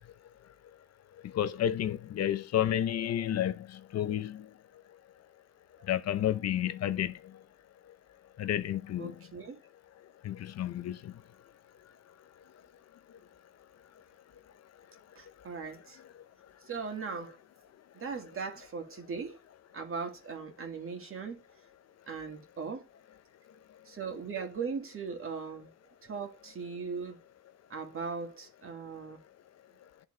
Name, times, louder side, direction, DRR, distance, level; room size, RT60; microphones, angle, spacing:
voice 1, 1.2-4.5 5.9-7.1 8.4-9.1 10.2-11.1, left 11 dB, 60° left, 0.7 m, -31 dB
voice 2, 9.0-9.6 15.2-16.0 16.7-17.4 17.9-19.4 19.7-21.4 22.1-22.9 23.9-25.7 26.0-27.2 27.7-29.2, right 5 dB, 45° right, 2.0 m, -39 dB
11.0 x 3.9 x 3.2 m
cardioid pair, 90°, 30 cm